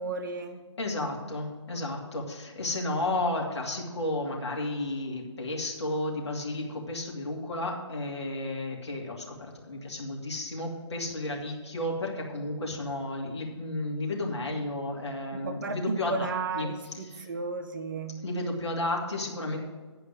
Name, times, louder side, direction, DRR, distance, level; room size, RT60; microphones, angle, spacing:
voice 1, 0.0-0.6 15.3-18.2, right 4 dB, 40° right, 6 dB, 1.0 m, -34 dB
voice 2, 0.8-16.3 16.5-16.7 17.0-17.3 18.2-19.6, left 2 dB, 65° left, -1 dB, 2.6 m, -32 dB
10.5 x 5.0 x 7.7 m, 1.4 s
figure-of-eight pair, 140°, 15 cm